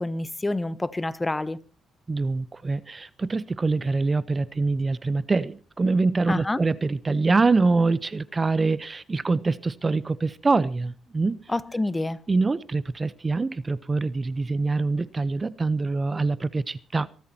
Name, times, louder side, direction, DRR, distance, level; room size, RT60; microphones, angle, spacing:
voice 1, 0.0-1.6 6.3-6.6 11.5-12.2, left 2 dB, 15° left, 1.0 m, -27 dB
voice 2, 2.1-11.4 12.3-17.1, right 3 dB, 25° right, 0.8 m, -24 dB
25.0 x 13.0 x 2.8 m
cardioid pair, 90°, 0 cm